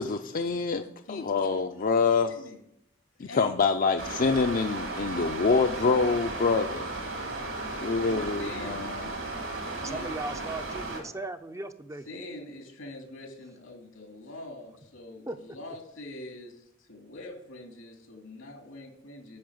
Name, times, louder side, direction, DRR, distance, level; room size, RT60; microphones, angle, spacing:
voice 1, 0.0-2.4 3.2-6.9 7.8-9.0, left 4 dB, 45° left, 6 dB, 0.5 m, -26 dB
voice 2, 1.1-1.9 2.3-2.6 3.2-3.5 4.2-4.6 8.1-9.0 9.7-10.2 12.1-19.4, left 2 dB, 90° left, 2 dB, 2.6 m, -44 dB
sound 1, 4.0-11.0, right 2 dB, 80° right, 3.2 m, -35 dB
voice 3, 9.8-12.1 15.3-15.4, right 2 dB, 15° right, 9 dB, 0.5 m, -37 dB
8.6 x 5.9 x 7.9 m, 0.76 s
head